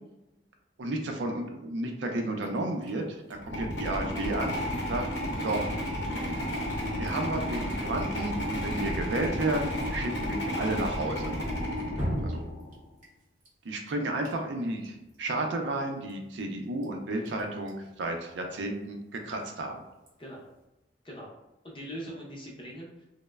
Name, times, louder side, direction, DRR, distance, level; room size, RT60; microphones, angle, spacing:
voice 1, 0.8-4.6 4.9-5.1 5.4-5.6 7.0-11.3 12.2-12.4 13.6-19.8, right 2 dB, 85° right, 3 dB, 0.4 m, -32 dB
Drip, 2.4-20.6, equal, 45° right, 0.7 m, -45 dB
sound 1, 3.4-12.8, equal, 75° left, 0.7 m, -32 dB
voice 2, 20.2-20.5 21.0-21.3 21.6-23.0, equal, 30° left, -3 dB, 0.6 m, -41 dB
3.0 x 2.0 x 2.2 m, 0.95 s
head